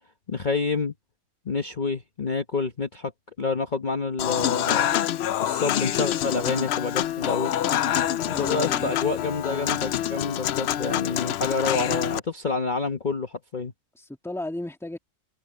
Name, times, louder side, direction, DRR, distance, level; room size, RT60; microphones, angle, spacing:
voice 1, 0.3-0.9 1.4-3.1 3.4-4.9 5.4-7.5 8.4-13.7, left 4 dB, 35° left, 1.2 m, -28 dB
Human voice / Acoustic guitar / Piano, 4.2-12.2, left 11 dB, 65° left, 0.6 m, -26 dB
voice 2, 8.3-8.9 13.9-15.0, left 1 dB, ahead, 1.6 m, -34 dB
omnidirectional pair, 1.5 m